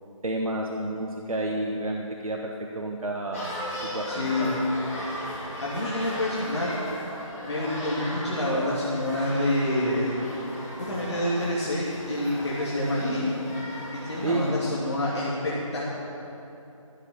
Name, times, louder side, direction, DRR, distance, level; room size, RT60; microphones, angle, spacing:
voice 1, 0.2-3.6 3.9-4.6 14.2-14.4, right 2 dB, 85° right, 0 dB, 1.3 m, -30 dB
sound 1, 3.3-14.5, left 1 dB, 25° left, 3.1 m, -37 dB
voice 2, 4.1-4.5 5.6-6.8 7.4-10.2 10.9-13.3 14.0-16.0, left 1 dB, 55° left, -8 dB, 2.7 m, -27 dB
14.0 x 8.7 x 7.0 m, 2.9 s
figure-of-eight pair, 175°, 18 cm